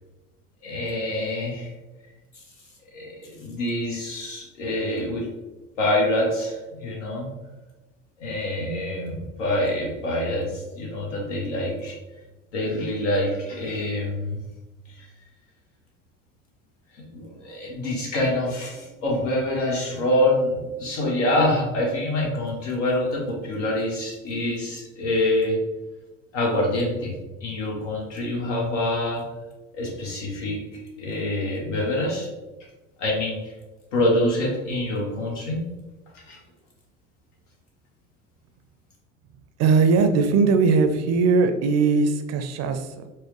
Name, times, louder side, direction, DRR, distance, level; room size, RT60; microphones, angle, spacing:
voice 1, 0.6-1.7 2.9-5.3 5.8-7.3 8.2-12.0 12.5-14.4 15.0-15.1 17.1-25.6 26.3-27.1 27.4-29.2 29.7-32.3 33.0-33.5 33.9-35.7 36.1-36.4, left 1 dB, 75° left, -2 dB, 1.2 m, -26 dB
voice 2, 39.6-43.1, right 4 dB, 45° right, 7 dB, 0.5 m, -20 dB
4.5 x 2.0 x 3.1 m, 1.1 s
hypercardioid pair, 70°, 37 cm